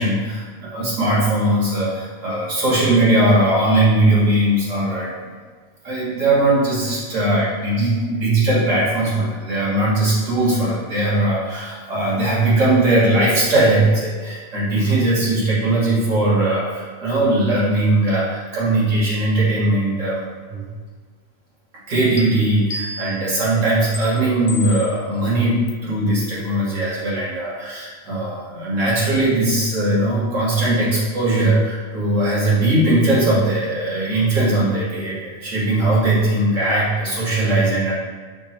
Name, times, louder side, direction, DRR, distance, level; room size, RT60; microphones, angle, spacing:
voice 1, 0.0-5.1 5.8-20.7 21.9-37.9, right 2 dB, 70° right, -7 dB, 1.6 m, -19 dB
sound 1, 22.2-22.3 22.7-23.3 23.9-24.0 24.5-25.0 25.7-25.8 26.2-26.4, left 1 dB, 90° left, 1.1 m, -32 dB
5.1 x 2.1 x 4.3 m, 1.5 s
omnidirectional pair, 1.4 m